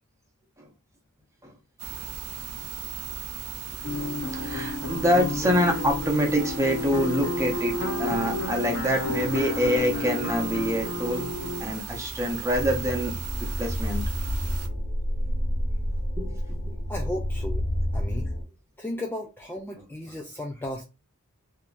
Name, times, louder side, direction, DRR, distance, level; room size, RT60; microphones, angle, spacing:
sound 1, 1.8-14.7, right 7 dB, 90° right, 0.6 m, -37 dB
sound 2, 3.8-11.6, left 2 dB, 55° left, 0.8 m, -31 dB
voice 1, 4.0-7.7 8.0-11.2 11.6-13.1 13.4-14.0 16.2-16.4 16.6-16.7, equal, 15° right, 2 dB, 0.8 m, -26 dB
sound 3, 12.5-18.4, equal, 85° left, 1.7 m, -29 dB
voice 2, 16.9-17.6 17.9-18.3 18.8-20.8, left 1 dB, 10° left, 1 dB, 0.4 m, -34 dB
3.5 x 2.9 x 2.5 m, 0.29 s
head